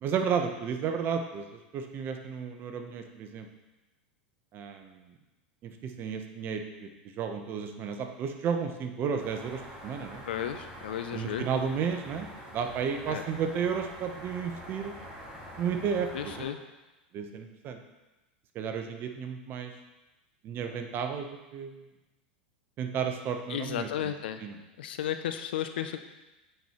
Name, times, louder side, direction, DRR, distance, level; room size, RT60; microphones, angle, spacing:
voice 1, 0.0-1.4 1.7-3.5 4.5-5.0 5.6-6.9 7.2-10.2 11.1-14.9 15.6-16.5 17.1-17.8 18.5-19.7 20.4-21.8 22.8-24.1 24.4-24.5, right 6 dB, 40° right, 5 dB, 0.8 m, -33 dB
sound 1, 9.2-16.4, equal, 10° right, 2.2 m, -45 dB
voice 2, 10.3-11.5 13.1-13.2 16.1-16.6 23.5-24.4 24.8-26.0, left 10 dB, 75° left, 9 dB, 0.4 m, -34 dB
9.2 x 4.5 x 3.0 m, 1.1 s
hypercardioid pair, 105°, 5 cm